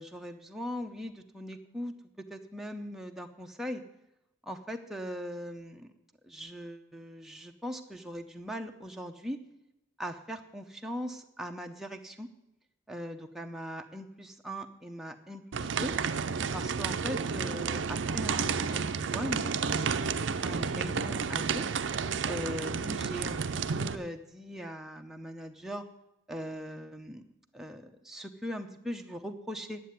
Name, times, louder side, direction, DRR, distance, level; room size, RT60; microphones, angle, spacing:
voice 1, 0.0-1.9 2.3-3.8 4.4-5.9 6.2-9.4 10.0-12.3 12.9-15.9 16.5-21.6 22.3-23.4 23.7-25.8 26.3-27.3 27.5-29.8, equal, ahead, 3 dB, 0.7 m, -40 dB
sound 1, 15.5-23.9, right 5 dB, 65° right, 0.5 m, -31 dB
10.0 x 7.6 x 9.3 m, 0.89 s
head